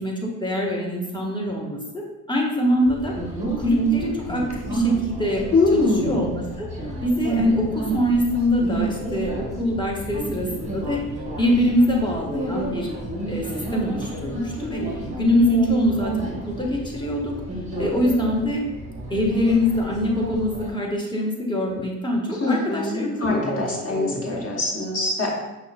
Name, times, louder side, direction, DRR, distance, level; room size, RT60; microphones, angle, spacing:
voice 1, 0.0-3.1 3.6-5.4 5.7-6.7 7.0-11.0 11.4-12.9 13.3-14.8 15.2-17.3 17.8-18.6 19.1-24.4, left 1 dB, 10° left, -2 dB, 1.0 m, -24 dB
sound 1, 2.9-20.7, right 3 dB, 15° right, 1.1 m, -30 dB
voice 2, 5.5-6.2 22.4-25.3, left 3 dB, 40° left, -2 dB, 1.3 m, -23 dB
5.4 x 2.3 x 2.4 m, 0.99 s
supercardioid pair, 60°, 39 cm